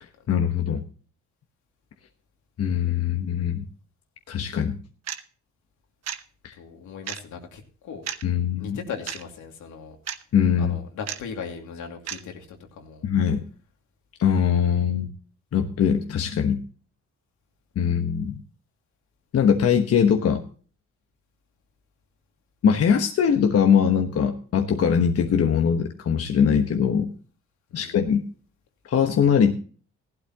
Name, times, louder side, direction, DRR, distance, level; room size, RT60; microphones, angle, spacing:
voice 1, 0.3-0.8 2.6-3.6 4.3-4.8 6.4-6.5 8.2-8.8 10.3-10.8 13.0-13.4 14.2-15.1 15.5-16.6 17.8-18.4 19.3-20.4 22.6-27.1 27.7-28.2 28.9-29.5, left 7 dB, 50° left, 4 dB, 1.2 m, -21 dB
sound 1, 5.1-5.2 6.1-6.2 7.1-7.2 8.1-8.2 9.1-9.2 10.1-10.2 11.1-11.2 12.1-12.2, right 9 dB, 60° right, 1.0 m, -32 dB
voice 2, 6.5-8.1 8.6-10.0 10.6-13.0 27.7-28.1, left 6 dB, 80° left, 3 dB, 2.6 m, -38 dB
15.5 x 12.0 x 2.9 m, 0.41 s
cardioid pair, 90°, 30 cm